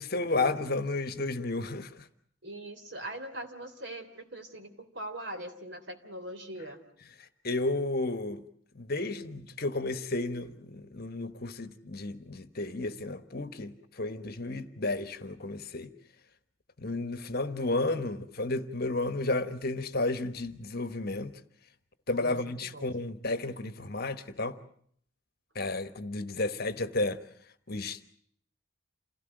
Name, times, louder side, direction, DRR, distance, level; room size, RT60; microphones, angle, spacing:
voice 1, 0.0-2.1 7.2-8.4 8.7-15.9 16.8-21.3 22.1-24.5 25.5-27.2 27.7-28.1, left 2 dB, 50° left, 1.3 m, -32 dB
voice 2, 2.4-6.8 22.1-22.9, right 1 dB, 55° right, 3.3 m, -41 dB
28.5 x 17.0 x 9.1 m
head